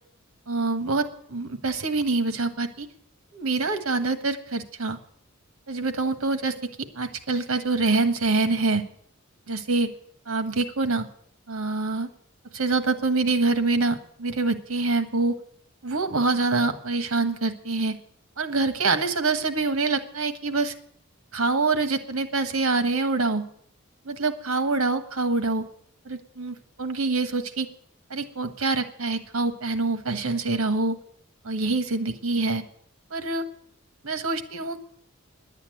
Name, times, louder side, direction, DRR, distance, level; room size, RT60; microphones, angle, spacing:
voice 1, 0.5-2.9 3.3-5.0 5.7-6.5 6.9-8.8 9.5-9.9 10.3-11.0 11.5-12.1 12.5-15.3 15.8-17.9 18.4-20.7 21.3-23.4 24.0-25.6 26.0-27.7 28.1-31.0 31.4-32.6 33.1-33.4 34.0-34.8, right 3 dB, 90° right, 9 dB, 1.4 m, -25 dB
11.0 x 8.4 x 9.2 m, 0.65 s
head